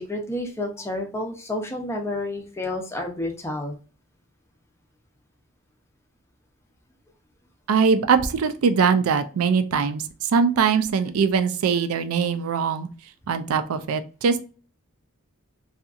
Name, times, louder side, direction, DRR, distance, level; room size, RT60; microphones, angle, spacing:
voice 1, 0.0-3.8, left 1 dB, 10° left, 1 dB, 0.5 m, -30 dB
voice 2, 7.7-12.9 13.3-14.4, right 6 dB, 80° right, 10 dB, 0.4 m, -22 dB
2.7 x 2.4 x 2.3 m, 0.37 s
head